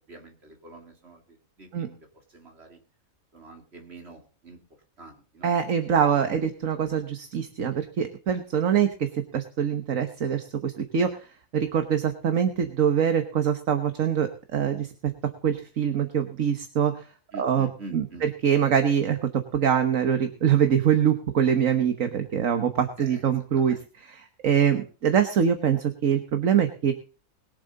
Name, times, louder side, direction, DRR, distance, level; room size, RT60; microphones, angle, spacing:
voice 1, 0.1-2.0 2.3-2.8 3.3-4.6 5.0-6.0 17.3-18.3 23.0-23.3 23.6-23.8, right 2 dB, 45° right, 2 dB, 3.2 m, -46 dB
voice 2, 5.4-11.2 11.5-14.9 15.4-16.9 17.4-19.2 19.5-26.9, right 8 dB, 70° right, 7 dB, 1.6 m, -24 dB
21.5 x 7.7 x 3.9 m, 0.38 s
omnidirectional pair, 1.5 m